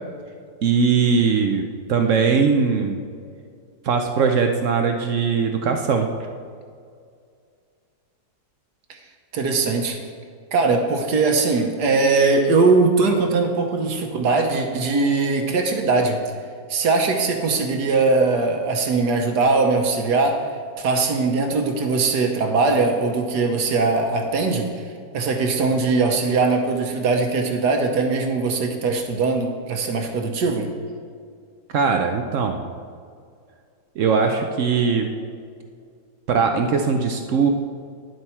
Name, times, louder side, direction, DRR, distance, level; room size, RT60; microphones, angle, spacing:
voice 1, 0.6-3.0 3.8-6.1 31.7-32.6 34.0-35.1 36.3-37.5, right 5 dB, 80° right, 4 dB, 0.6 m, -20 dB
voice 2, 9.3-10.0 10.5-16.2 16.7-20.5 20.8-24.8 25.1-30.7, right 3 dB, 60° right, 4 dB, 1.4 m, -20 dB
10.5 x 7.8 x 4.4 m, 2.2 s
omnidirectional pair, 2.1 m